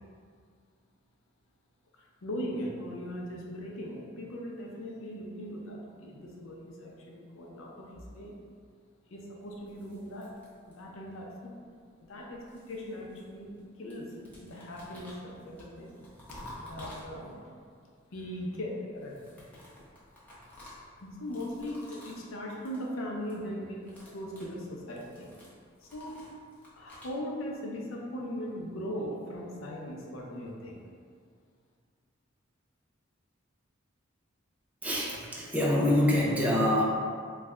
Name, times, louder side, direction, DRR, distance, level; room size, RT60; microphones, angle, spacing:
voice 1, 1.9-8.3 9.1-10.3 10.7-11.5 12.0-12.4 12.7-14.1 14.4-15.9 16.5-17.5 18.1-19.2 21.0-25.4 25.8-26.2 26.8-30.8, equal, 75° left, -1 dB, 0.5 m, -39 dB
sound 1, 9.5-11.1 12.0-13.6 13.9-17.5 18.9-22.3 22.5-22.9 23.1-23.5 23.7-27.2, left 1 dB, 10° left, 0.7 m, -51 dB
voice 2, 34.8-36.8, left 1 dB, 5° right, -4 dB, 0.4 m, -25 dB
3.2 x 2.2 x 3.5 m, 2.1 s
head